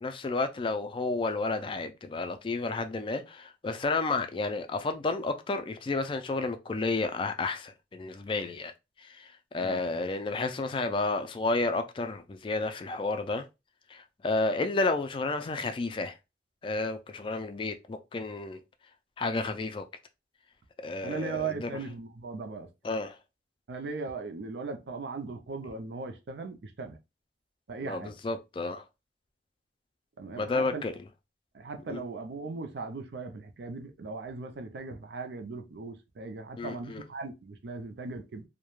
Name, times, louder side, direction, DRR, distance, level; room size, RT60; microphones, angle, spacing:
voice 1, 0.0-8.7 9.0-13.5 13.9-16.2 16.6-18.6 19.2-19.9 20.8-21.7 22.8-23.2 27.8-28.8 30.4-30.9 31.9-32.0 36.6-37.0, left 3 dB, 30° left, 0.3 m, -31 dB
voice 2, 21.0-22.7 23.7-27.0 27.7-28.1 30.2-30.8 31.5-38.4, right 4 dB, 70° right, 0.5 m, -38 dB
2.3 x 2.1 x 3.0 m
head